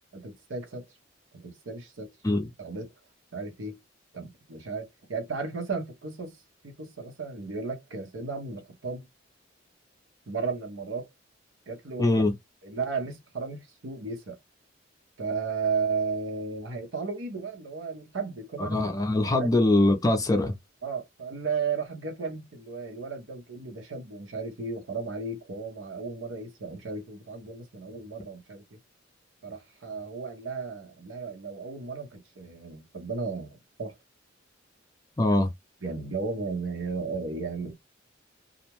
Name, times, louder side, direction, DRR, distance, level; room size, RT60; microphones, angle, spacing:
voice 1, 0.1-0.9 1.3-2.1 2.6-2.9 3.3-3.8 4.1-6.4 6.6-9.0 10.3-11.1 11.7-12.1 12.6-14.4 15.2-18.8 19.4-19.5 20.8-28.6 29.4-33.9 35.8-37.7, right 4 dB, 75° right, 0.9 m, -34 dB
voice 2, 12.0-12.3 18.6-20.5 35.2-35.5, left 2 dB, 20° left, 0.5 m, -23 dB
2.4 x 2.1 x 2.9 m
head